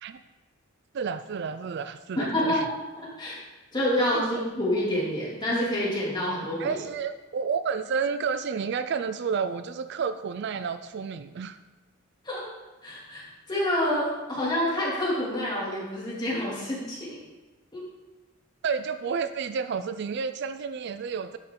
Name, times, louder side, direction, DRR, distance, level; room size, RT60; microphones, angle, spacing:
voice 1, 0.9-2.7 4.1-4.3 6.6-11.6 18.6-21.4, right 6 dB, 55° right, 11 dB, 0.3 m, -30 dB
voice 2, 2.2-2.7 3.0-3.4 3.7-6.8 12.2-12.4 12.8-17.2 17.7-17.8, left 1 dB, 20° left, -6 dB, 2.8 m, -28 dB
11.0 x 5.9 x 3.8 m, 1.2 s
head